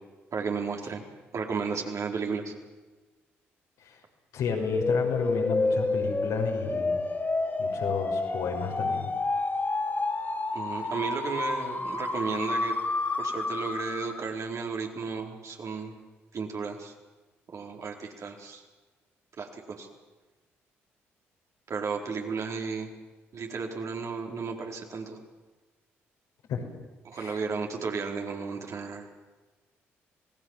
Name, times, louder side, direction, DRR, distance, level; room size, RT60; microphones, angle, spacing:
voice 1, 0.3-1.0 1.3-2.5 10.5-12.8 13.2-15.9 16.3-16.9 17.5-18.6 19.4-19.9 21.7-22.9 23.3-25.2 27.0-29.1, right 5 dB, 55° right, 1 dB, 4.5 m, -33 dB
voice 2, 4.3-7.1 7.6-9.1 26.5-26.6 27.1-27.4, left 6 dB, 70° left, 1 dB, 5.6 m, -32 dB
sound 1, 4.5-14.3, left 3 dB, 30° left, 3.7 m, -29 dB
27.0 x 18.5 x 7.5 m, 1.3 s
hypercardioid pair, 45°, 6 cm